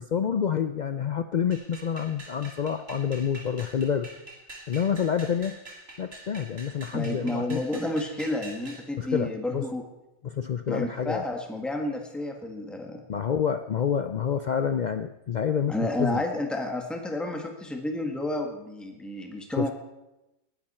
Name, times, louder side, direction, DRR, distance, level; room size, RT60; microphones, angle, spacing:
voice 1, 0.0-4.2 4.7-5.5 6.0-7.6 9.0-9.6 10.2-11.2 13.1-16.2 19.6-19.7, left 7 dB, 85° left, 10 dB, 0.4 m, -28 dB
sound 1, 1.5-8.9, right 2 dB, 45° right, 2.7 m, -45 dB
voice 2, 6.9-9.8 10.7-13.0 15.7-19.7, left 1 dB, ahead, 2 dB, 1.6 m, -31 dB
19.5 x 10.0 x 4.3 m, 0.95 s
omnidirectional pair, 1.4 m